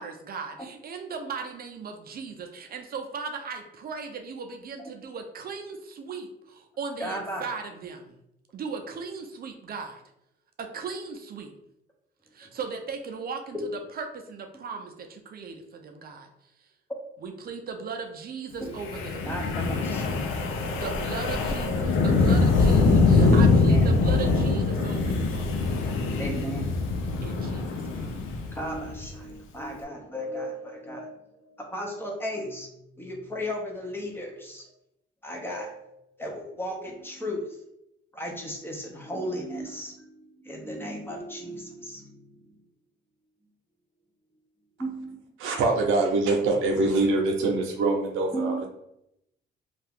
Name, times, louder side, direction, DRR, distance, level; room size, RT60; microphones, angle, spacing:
voice 1, 0.0-8.2 8.5-10.0 10.6-11.5 12.3-16.3 16.6-16.7 17.2-19.3 20.7-25.6 27.2-28.1, right 5 dB, 50° right, 4 dB, 0.5 m, -37 dB
voice 2, 7.0-7.4 12.4-12.5 13.5-13.7 18.6-18.7 19.3-20.4 23.2-23.3 23.7-23.9 26.2-26.7 28.6-32.7 33.0-34.7 35.2-37.4 38.1-40.1 40.4-42.6 44.8-45.2 48.3-48.7, equal, 10° left, 0 dB, 0.7 m, -35 dB
Wind, 18.8-29.1, left 3 dB, 90° left, 0.5 m, -23 dB
voice 3, 45.4-48.7, right 3 dB, 90° right, 2 dB, 0.6 m, -24 dB
2.7 x 2.4 x 3.4 m, 0.81 s
cardioid pair, 90°, 20 cm